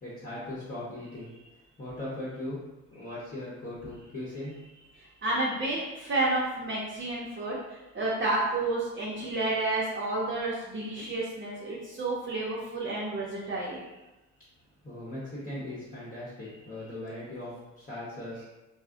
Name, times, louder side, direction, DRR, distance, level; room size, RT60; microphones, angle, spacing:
voice 1, 0.0-1.3 1.8-2.6 2.9-4.6 14.8-18.4, left 1 dB, 30° left, -8 dB, 0.9 m, -39 dB
voice 2, 5.0-13.8, right 2 dB, 40° right, -6 dB, 0.7 m, -30 dB
2.3 x 2.1 x 3.7 m, 1.0 s
cardioid pair, 90°, 30 cm